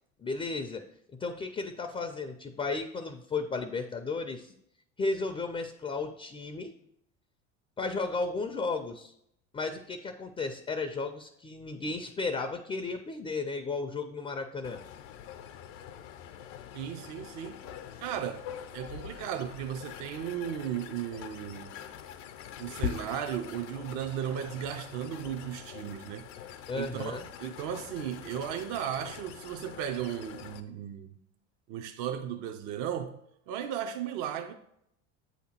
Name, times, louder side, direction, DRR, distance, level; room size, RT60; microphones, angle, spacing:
voice 1, 0.2-0.9 1.1-4.5 5.0-6.7 7.8-9.1 9.5-14.8 26.7-27.3, left 3 dB, 15° left, 0.4 m, -34 dB
sound 1, 14.6-30.6, left 9 dB, 75° left, 0.6 m, -43 dB
voice 2, 16.7-17.6 18.0-18.5 18.7-21.7 22.6-26.3 26.7-31.1 31.7-34.5, right 9 dB, 60° right, 0.6 m, -35 dB
7.8 x 2.9 x 4.3 m
hypercardioid pair, 80°, 37 cm